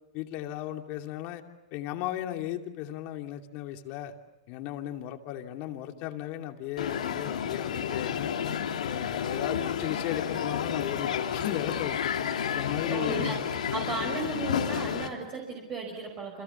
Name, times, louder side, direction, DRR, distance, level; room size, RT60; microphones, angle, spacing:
voice 1, 0.1-1.4 1.7-4.1 4.5-8.4 8.8-12.1 12.5-13.4, left 12 dB, 45° left, 4 dB, 2.7 m, -36 dB
Crowd, 6.8-15.1, left 8 dB, 90° left, 3.2 m, -31 dB
voice 2, 12.9-13.4 13.7-16.4, right 4 dB, 30° right, 0 dB, 5.8 m, -35 dB
29.5 x 27.0 x 7.2 m, 0.94 s
hypercardioid pair, 135°, 4 cm